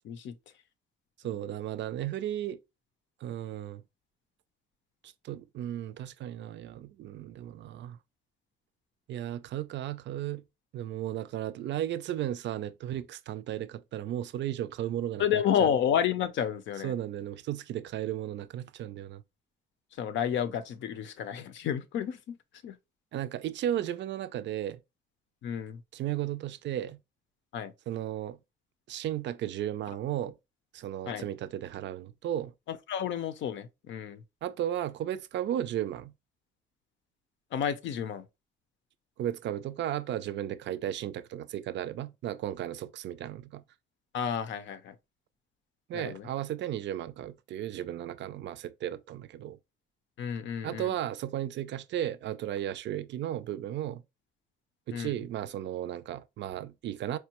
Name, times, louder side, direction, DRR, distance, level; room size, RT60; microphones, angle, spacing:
voice 1, 1.2-2.6 3.2-3.8 5.0-8.0 9.1-10.4 10.7-15.7 16.8-19.2 23.1-24.8 25.9-27.0 27.9-28.4 28.9-30.4 30.7-32.5 34.4-36.1 39.2-43.6 45.9-49.6 50.6-54.0 54.9-57.2, right 11 dB, 65° right, 0.4 m, -35 dB
voice 2, 15.2-16.9 19.9-22.4 22.6-22.8 25.4-25.8 27.5-27.7 31.1-31.3 32.7-34.2 37.5-38.3 44.1-45.0 45.9-46.3 50.2-50.9 54.9-55.2, left 9 dB, 70° left, 0.6 m, -31 dB
4.4 x 2.2 x 2.9 m
cardioid pair, 90°, 20 cm